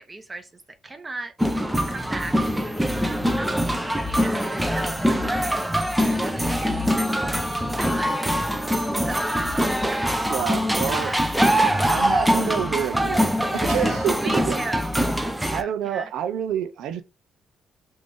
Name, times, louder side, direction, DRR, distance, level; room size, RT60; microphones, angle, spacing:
voice 1, 0.0-1.3 1.9-2.5 3.2-3.7 4.0-5.7 6.5-8.7 9.0-9.4 9.9-10.4 10.9-11.5 14.2-16.1, right 2 dB, 25° right, 0.9 m, -37 dB
sound 1, 1.4-15.6, equal, 5° right, 0.5 m, -23 dB
sound 2, 2.3-14.7, left 2 dB, 15° left, 1.1 m, -39 dB
voice 2, 10.3-11.1 11.9-14.6 15.5-17.0, right 9 dB, 85° right, 0.4 m, -28 dB
3.3 x 2.6 x 3.4 m
cardioid pair, 90°, 0 cm